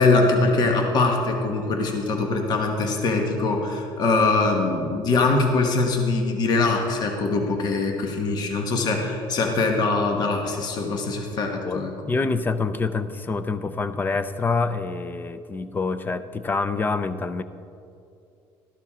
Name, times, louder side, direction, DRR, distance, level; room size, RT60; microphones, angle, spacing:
voice 1, 0.0-11.9, left 3 dB, 45° left, 3 dB, 1.3 m, -22 dB
voice 2, 12.1-17.4, left 4 dB, 20° left, 12 dB, 0.5 m, -26 dB
13.0 x 12.0 x 3.7 m, 2.5 s
cardioid pair, 125°, 9 cm